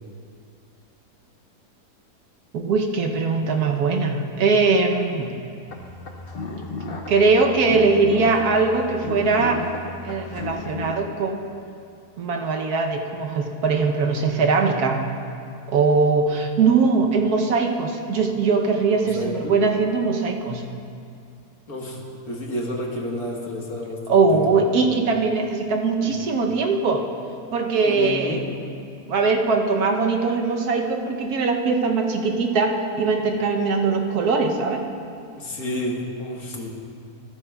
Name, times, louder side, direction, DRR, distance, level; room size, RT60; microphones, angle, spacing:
voice 1, 2.5-5.3 7.1-9.6 10.0-11.4 12.2-15.0 15.7-20.6 24.1-27.1 27.5-28.4 29.1-34.8, right 4 dB, 70° right, 2 dB, 1.3 m, -21 dB
sound 1, 5.7-10.9, left 3 dB, 45° left, 0.9 m, -34 dB
voice 2, 19.0-19.6 21.7-22.0 22.3-24.5 26.0-26.1 27.8-28.4 35.4-36.7, left 1 dB, 65° left, -2 dB, 1.9 m, -30 dB
15.0 x 13.5 x 2.3 m, 2.5 s
omnidirectional pair, 1.8 m